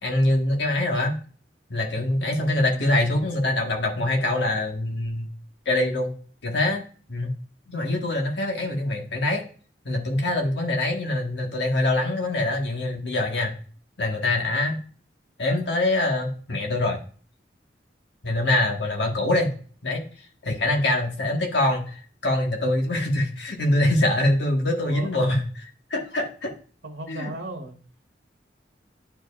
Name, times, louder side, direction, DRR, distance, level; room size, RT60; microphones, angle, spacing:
voice 1, 0.0-1.1 1.7-5.3 5.6-6.1 6.4-6.8 7.1-7.3 7.7-9.4 9.8-13.5 14.0-14.8 15.4-17.0 18.2-19.5 19.8-20.0 20.4-25.4 25.9-26.5 27.1-27.3, left 1 dB, 70° left, 2 dB, 1.4 m, -24 dB
voice 2, 2.7-3.2 21.1-21.2 24.8-25.4 26.8-27.8, right 2 dB, 90° right, 0 dB, 1.2 m, -36 dB
10.0 x 4.7 x 2.4 m, 0.42 s
head